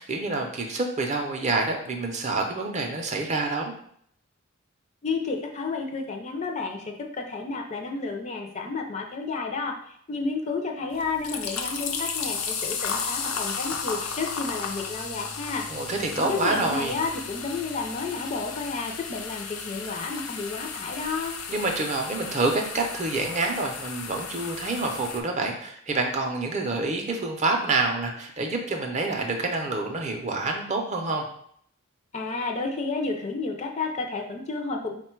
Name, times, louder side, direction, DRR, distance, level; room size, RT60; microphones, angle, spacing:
voice 1, 0.0-3.7 15.7-17.0 21.5-31.3, right 3 dB, 35° right, 2 dB, 0.5 m, -27 dB
voice 2, 5.0-21.4 32.1-34.9, left 4 dB, 30° left, 2 dB, 0.4 m, -31 dB
sound 1, 10.9-25.2, left 5 dB, 80° left, 0.5 m, -34 dB
4.0 x 2.2 x 4.4 m, 0.66 s
head